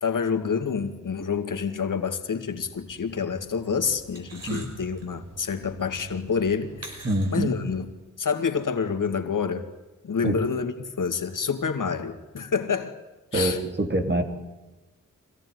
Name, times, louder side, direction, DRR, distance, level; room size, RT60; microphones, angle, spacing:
voice 1, 0.0-7.0 7.3-7.8 8.2-9.7 10.0-13.0 13.3-13.6, left 6 dB, 80° left, 2.3 m, -28 dB
sound 1, 2.5-7.8, right 2 dB, 50° right, 5.8 m, -46 dB
voice 2, 7.0-7.6 10.2-10.4 13.3-14.2, right 1 dB, 35° right, 2.9 m, -25 dB
25.0 x 17.5 x 9.6 m
wide cardioid pair, 145°, 31 cm